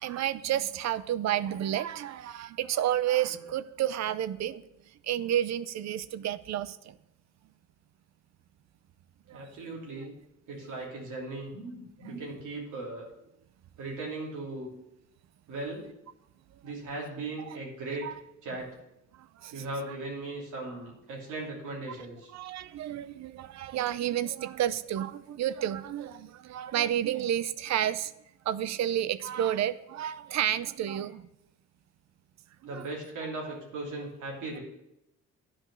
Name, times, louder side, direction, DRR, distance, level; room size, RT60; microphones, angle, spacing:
voice 1, 0.0-4.6 5.0-7.0 9.3-9.5 9.9-10.0 17.5-17.6 18.0-18.1 19.1-20.0 22.3-28.1 28.5-31.3 32.6-32.8, right 11 dB, 65° right, 16 dB, 0.5 m, -31 dB
voice 2, 9.3-10.1 10.5-13.1 13.8-14.7 15.5-15.9 16.6-18.1 18.4-18.7 19.5-22.3 32.6-34.6, right 2 dB, 80° right, -2 dB, 3.0 m, -38 dB
9.9 x 5.2 x 6.2 m, 0.86 s
cardioid pair, 90°, 30 cm